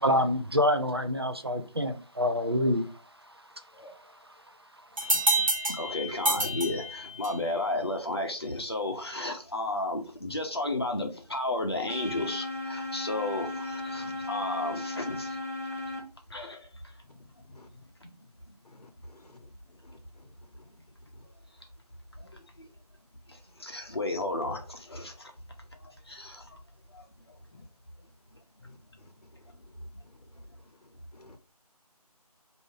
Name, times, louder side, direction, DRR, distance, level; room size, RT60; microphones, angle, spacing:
voice 1, 0.0-2.9, left 1 dB, 40° right, 0.5 m, -26 dB
sound 1, 5.0-7.5, right 2 dB, 55° right, 0.9 m, -28 dB
voice 2, 5.1-5.5 14.1-14.2 17.5-17.7 18.7-19.3 19.8-20.0 27.5-27.7 31.1-31.4, left 2 dB, 75° left, 0.8 m, -52 dB
voice 3, 5.7-15.4 16.3-16.7 18.0-18.1 22.2-22.7 23.3-25.3 25.8-26.6 26.9-27.3, left 2 dB, 40° left, 0.8 m, -33 dB
sound 2, 11.9-16.0, left 2 dB, 20° left, 1.4 m, -35 dB
4.4 x 2.7 x 3.1 m
figure-of-eight pair, 175°, 20 cm